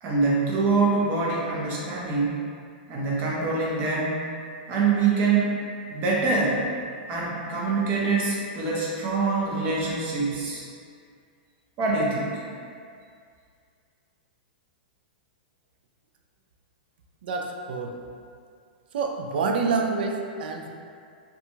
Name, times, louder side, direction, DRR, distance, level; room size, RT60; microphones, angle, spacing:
voice 1, 0.0-2.4 2.9-4.2 4.7-5.6 5.9-6.6 7.1-10.6 11.8-12.4, right 4 dB, 35° right, -5 dB, 0.7 m, -24 dB
voice 2, 17.2-18.0 18.9-20.7, right 4 dB, 70° right, 2 dB, 0.3 m, -27 dB
2.7 x 2.3 x 2.7 m, 2.2 s
hypercardioid pair, 130°, 5 cm